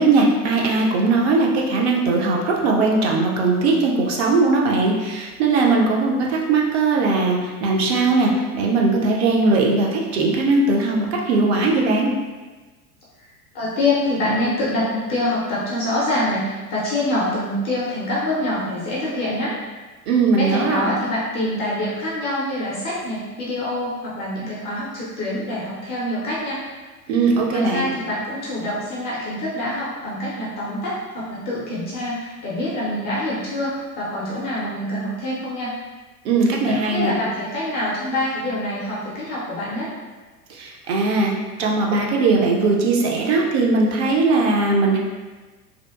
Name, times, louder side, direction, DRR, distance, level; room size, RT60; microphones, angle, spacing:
voice 1, 0.0-12.1 20.1-20.9 27.1-27.9 36.2-37.1 40.5-45.0, right 3 dB, 45° right, -1 dB, 0.5 m, -19 dB
voice 2, 13.5-19.6 20.4-26.6 27.1-35.7 36.4-39.9, left 1 dB, 25° left, -7 dB, 0.4 m, -25 dB
2.8 x 2.1 x 2.2 m, 1.3 s
figure-of-eight pair, 85°, 47 cm